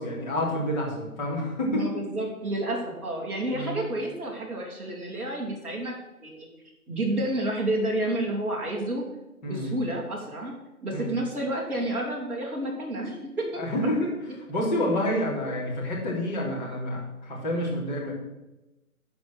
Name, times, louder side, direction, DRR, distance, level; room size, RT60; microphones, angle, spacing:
voice 1, 0.0-1.9 3.5-3.8 9.4-9.8 10.9-11.1 13.6-14.1 14.5-18.1, left 1 dB, 30° left, -4 dB, 3.2 m, -28 dB
voice 2, 1.7-5.9 6.2-6.5 6.9-9.0 9.4-10.5 10.8-13.6, right 1 dB, 5° right, -7 dB, 1.1 m, -30 dB
12.0 x 5.1 x 6.2 m, 1.0 s
figure-of-eight pair, 155°, 45 cm